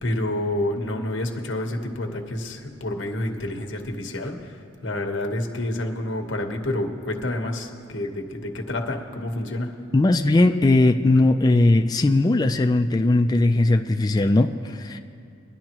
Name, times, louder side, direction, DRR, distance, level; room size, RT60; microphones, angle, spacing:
voice 1, 0.0-9.7 11.1-11.2, left 1 dB, 70° left, 3 dB, 1.1 m, -29 dB
voice 2, 9.9-15.0, left 2 dB, 20° left, 5 dB, 0.3 m, -19 dB
22.0 x 10.5 x 3.0 m, 2.4 s
head